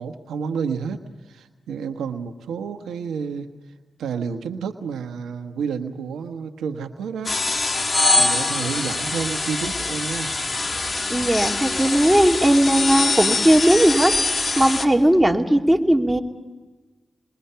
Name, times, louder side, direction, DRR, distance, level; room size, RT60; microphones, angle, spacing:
voice 1, 0.0-3.5 4.0-7.4 8.1-10.4, right 6 dB, 90° right, 7 dB, 1.3 m, -30 dB
sound 1, 7.2-14.8, left 3 dB, 40° left, 2.5 m, -23 dB
voice 2, 11.1-16.2, right 1 dB, 10° right, 2 dB, 2.9 m, -18 dB
29.0 x 22.0 x 5.7 m, 1.2 s
supercardioid pair, 45°, 0 cm